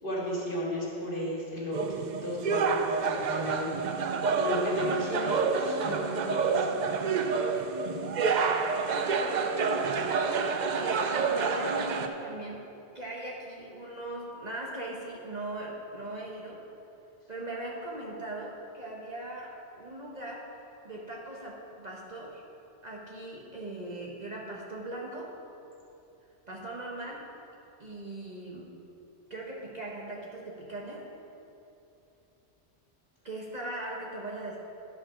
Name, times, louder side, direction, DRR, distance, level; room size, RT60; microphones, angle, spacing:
voice 1, 0.0-3.7 4.3-6.8 7.3-7.4, left 1 dB, 45° left, -5 dB, 2.0 m, -34 dB
sound 1, 1.7-12.1, right 5 dB, 55° right, 0.5 m, -28 dB
voice 2, 4.8-5.9 7.6-8.3 8.9-12.7 12.9-16.6 17.3-22.4 22.8-25.4 26.5-27.3 27.8-28.8 29.3-31.1 33.2-34.6, right 1 dB, 40° right, -3 dB, 0.9 m, -40 dB
11.0 x 4.9 x 5.7 m, 2.9 s
omnidirectional pair, 1.2 m